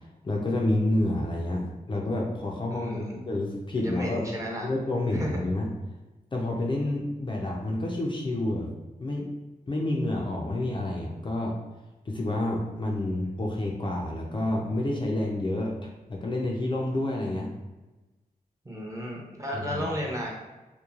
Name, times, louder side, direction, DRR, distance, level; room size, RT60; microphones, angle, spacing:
voice 1, 0.2-4.3 4.6-5.7 6.3-8.7 9.0-9.3 9.7-11.5 12.1-15.7 16.1-17.5 19.5-19.9, left 1 dB, 35° left, -2 dB, 0.4 m, -29 dB
voice 2, 2.7-3.2 3.8-4.7 5.1-5.4 18.6-20.3, equal, 20° right, -2 dB, 0.7 m, -33 dB
3.0 x 2.2 x 2.4 m, 1.1 s
cardioid pair, 70°, 15 cm